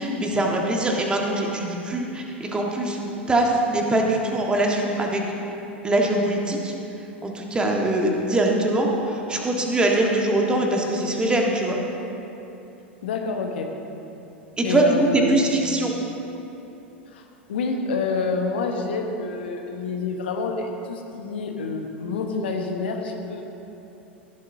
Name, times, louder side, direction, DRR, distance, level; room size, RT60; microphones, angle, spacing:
voice 1, 0.0-5.2 5.8-6.7 7.2-11.8 14.6-15.9, right 1 dB, 15° right, 0 dB, 1.6 m, -22 dB
voice 2, 13.0-13.7 14.6-15.4 17.1-17.2 17.5-23.4, left 3 dB, 65° left, 3 dB, 1.2 m, -27 dB
17.5 x 10.5 x 2.8 m, 3.0 s
figure-of-eight pair, 85°, 6 cm